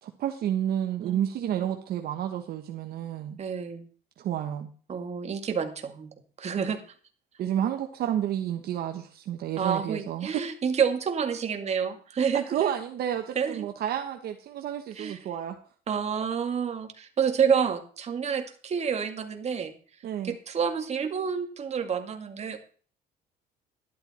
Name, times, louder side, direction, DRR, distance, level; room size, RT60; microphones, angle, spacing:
voice 1, 0.0-3.4 4.2-4.7 7.4-10.4 12.2-15.6 20.0-20.4, right 10 dB, 65° right, 5 dB, 1.2 m, -30 dB
voice 2, 1.0-1.8 3.4-3.9 4.9-6.8 9.6-12.7 13.4-13.7 15.0-15.2 15.9-19.8 20.2-22.6, right 7 dB, 40° right, 5 dB, 2.1 m, -29 dB
12.0 x 11.5 x 4.3 m, 0.42 s
cardioid pair, 110°, 17 cm